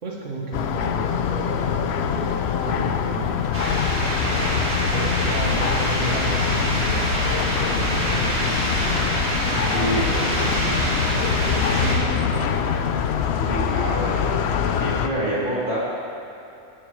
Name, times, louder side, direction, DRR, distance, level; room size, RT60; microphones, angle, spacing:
voice 1, 0.0-3.5 4.8-7.2 7.5-8.4 9.5-10.6 11.3-12.6, right 1 dB, 60° right, -3 dB, 2.0 m, -33 dB
sound 1, 0.5-15.1, left 7 dB, 65° left, 0.7 m, -24 dB
sound 2, 3.5-11.9, right 1 dB, 85° right, 2.9 m, -25 dB
voice 2, 9.7-10.0 13.4-14.3 14.6-15.8, equal, 35° right, -7 dB, 2.3 m, -26 dB
17.5 x 9.7 x 3.2 m, 2.7 s
omnidirectional pair, 1.5 m